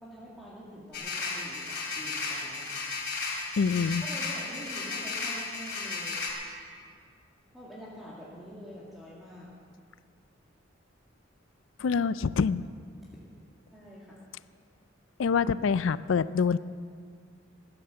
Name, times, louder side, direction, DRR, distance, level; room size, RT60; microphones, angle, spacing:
voice 1, 0.0-2.7 4.0-6.3 7.5-9.5 13.7-14.2, equal, ahead, -8 dB, 2.0 m, -46 dB
sound 1, 0.9-6.3, left 4 dB, 55° left, 2.8 m, -34 dB
voice 2, 3.6-4.0 11.8-12.7 15.2-16.6, left 5 dB, 75° left, 17 dB, 0.4 m, -25 dB
16.0 x 9.9 x 7.0 m, 2.2 s
head